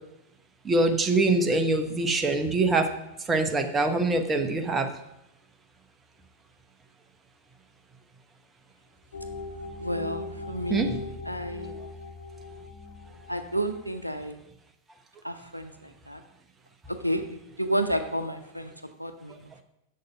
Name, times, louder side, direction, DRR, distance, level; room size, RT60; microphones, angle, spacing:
voice 1, 0.7-2.9 3.3-4.9 10.7-11.0, right 2 dB, 15° right, 6 dB, 1.0 m, -24 dB
sound 1, 9.1-14.2, left 3 dB, 65° left, 1.2 m, -40 dB
voice 2, 9.8-11.0 11.2-11.8 13.3-14.4 15.2-16.2 16.9-18.7 19.0-19.6, equal, 90° right, 8 dB, 0.6 m, -31 dB
6.8 x 6.6 x 5.7 m, 0.86 s
figure-of-eight pair, 90°, 0 cm